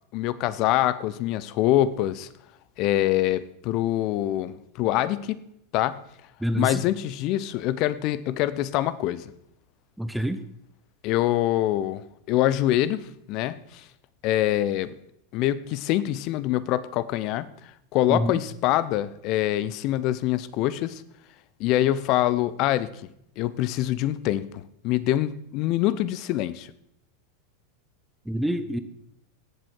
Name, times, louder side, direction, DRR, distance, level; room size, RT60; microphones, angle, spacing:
voice 1, 0.1-2.3 2.8-5.4 5.7-6.0 6.5-9.3 11.0-13.8 14.2-14.9 15.3-17.5 17.9-21.0 21.6-22.9 23.4-26.7, left 14 dB, 50° left, 17 dB, 0.8 m, -25 dB
voice 2, 6.4-6.8 10.0-10.4 18.1-18.3 28.3-28.8, equal, 5° right, 10 dB, 1.0 m, -26 dB
17.0 x 7.8 x 4.8 m, 0.76 s
hypercardioid pair, 90°, 0 cm